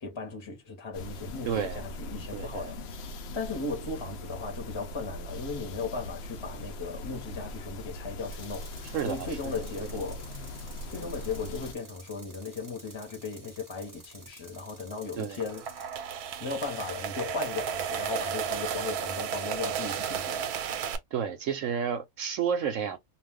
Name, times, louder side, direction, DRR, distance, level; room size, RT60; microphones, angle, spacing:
voice 1, 0.0-2.8 3.3-8.7 9.0-10.2 10.9-15.6 16.4-20.5, left 4 dB, 25° left, 0.7 m, -36 dB
sound 1, 0.9-11.7, left 1 dB, 70° left, 0.6 m, -40 dB
voice 2, 1.4-1.8 2.3-2.7 8.9-9.4 15.1-15.4 21.1-23.0, right 7 dB, 65° right, 0.8 m, -31 dB
Tools, 8.3-16.0, right 1 dB, 20° right, 0.6 m, -51 dB
sound 2, 15.4-21.0, right 8 dB, 90° right, 1.1 m, -33 dB
2.4 x 2.3 x 3.4 m
omnidirectional pair, 1.6 m